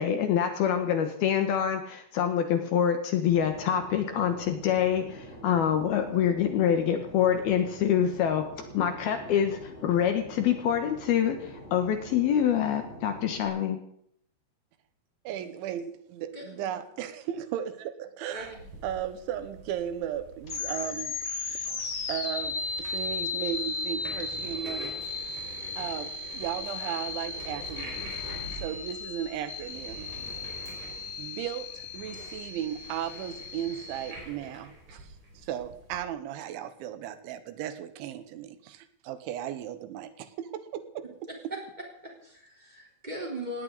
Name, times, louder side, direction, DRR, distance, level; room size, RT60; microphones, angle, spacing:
voice 1, 0.0-8.4 8.7-13.8, left 9 dB, 70° left, 6 dB, 2.8 m, -26 dB
Fixed-wing aircraft airplane, 3.3-13.5, equal, 15° left, 6.6 m, -45 dB
voice 2, 15.3-18.5 18.8-21.2 22.1-25.0 25.8-28.1 28.5-30.4 31.2-41.3, right 10 dB, 85° right, 11 dB, 3.4 m, -36 dB
voice 3, 16.3-16.7 18.3-18.7 41.0-41.4 42.0-43.6, right 1 dB, 10° right, -1 dB, 3.5 m, -40 dB
sound 1, 18.4-36.0, right 2 dB, 55° right, 7.2 m, -47 dB
sound 2, 20.4-34.1, left 4 dB, 50° left, 1.3 m, -36 dB
18.5 x 17.5 x 4.1 m, 0.69 s
omnidirectional pair, 5.3 m